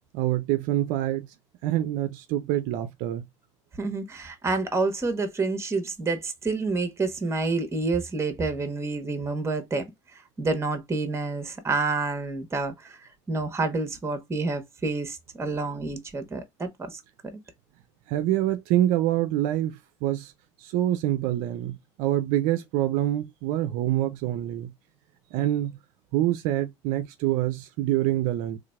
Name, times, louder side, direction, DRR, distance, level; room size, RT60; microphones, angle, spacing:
voice 1, 0.1-1.3 1.6-3.2 18.1-20.3 20.6-24.7 25.3-25.8 26.1-28.6, right 13 dB, 65° right, 0.5 m, -26 dB
voice 2, 3.8-9.8 10.4-13.0 13.3-17.0, right 3 dB, 20° right, 1.1 m, -28 dB
3.8 x 3.1 x 2.3 m
supercardioid pair, 95°, 15 cm